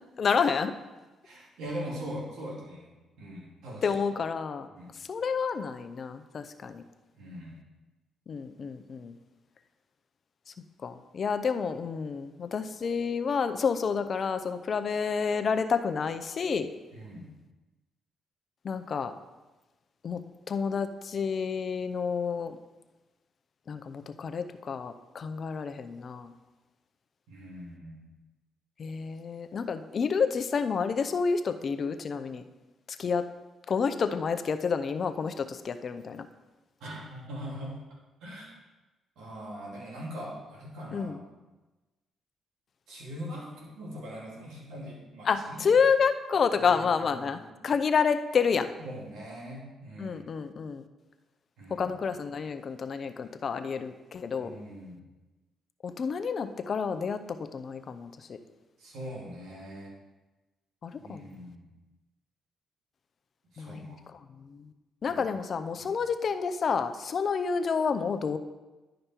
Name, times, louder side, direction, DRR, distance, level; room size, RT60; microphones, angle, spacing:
voice 1, 0.2-0.7 3.8-4.7 4.9-6.8 8.3-9.2 10.8-16.7 18.6-19.1 20.0-20.2 20.5-22.6 23.7-26.3 28.8-32.4 32.9-33.3 33.7-36.3 40.9-41.2 45.3-48.7 50.0-50.9 51.7-54.5 55.8-58.4 60.8-61.4 63.6-64.7 65.0-68.4, left 6 dB, 50° left, 9 dB, 0.6 m, -29 dB
voice 2, 1.2-3.9 4.7-4.9 7.1-7.6 16.9-17.3 27.3-28.1 36.8-37.8 38.2-38.6 39.2-41.3 42.9-45.7 46.6-47.4 48.8-50.2 51.6-51.9 54.4-55.1 58.8-59.9 61.0-61.7 63.5-64.0 65.1-65.2 65.8-65.9, equal, 85° right, -3 dB, 2.7 m, -41 dB
11.0 x 5.2 x 4.5 m, 1.1 s
cardioid pair, 90°, 0 cm